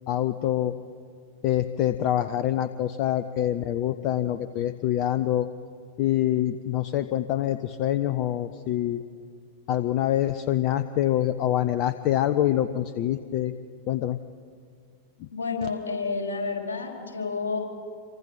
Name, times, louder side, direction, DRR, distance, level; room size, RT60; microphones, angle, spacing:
voice 1, 0.1-0.7 1.4-5.5 6.0-9.0 9.7-13.5 13.9-14.2, left 12 dB, 40° left, 12 dB, 0.7 m, -25 dB
voice 2, 15.3-17.6, left 4 dB, 70° left, 1 dB, 4.5 m, -30 dB
27.0 x 24.5 x 5.9 m, 2.2 s
figure-of-eight pair, 90°, 0 cm